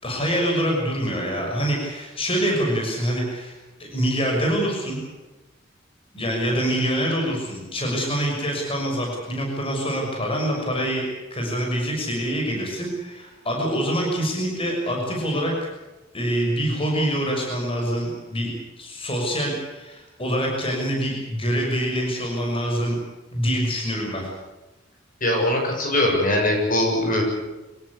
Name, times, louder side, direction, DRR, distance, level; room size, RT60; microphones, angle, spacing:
voice 1, 0.0-3.5 3.8-5.0 6.1-11.0 11.3-15.5 16.1-18.5 18.8-23.0 23.3-24.3, equal, 30° left, 0 dB, 6.3 m, -25 dB
voice 2, 25.2-27.2, left 1 dB, 45° left, 1 dB, 6.8 m, -21 dB
25.5 x 18.0 x 8.4 m, 1.1 s
head